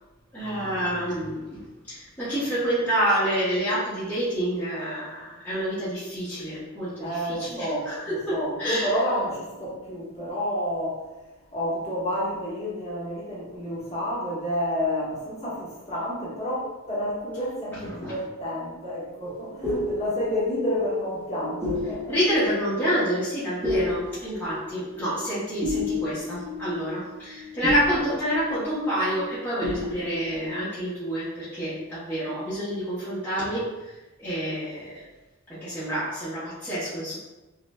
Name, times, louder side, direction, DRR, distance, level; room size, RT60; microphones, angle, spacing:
voice 1, 0.3-1.6 1.9-8.9 18.0-18.2 22.1-33.7 34.2-35.0 35.5-37.2, equal, 10° left, -12 dB, 0.9 m, -28 dB
voice 2, 7.0-11.0 11.5-22.1, equal, 30° left, -7 dB, 1.1 m, -29 dB
sound 1, 19.2-29.3 29.6-30.5, left 2 dB, 20° right, 0.7 m, -32 dB
5.2 x 2.4 x 2.3 m, 1.1 s
head